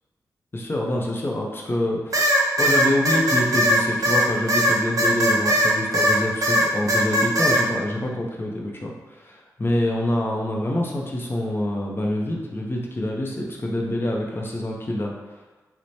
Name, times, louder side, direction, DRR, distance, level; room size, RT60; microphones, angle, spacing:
voice 1, 0.5-15.1, left 1 dB, 30° left, -1 dB, 0.6 m, -26 dB
sound 1, 2.1-6.2 6.4-7.6, equal, 55° right, 0.5 m, -19 dB
3.0 x 2.1 x 2.7 m, 1.2 s
supercardioid pair, 45°, 7 cm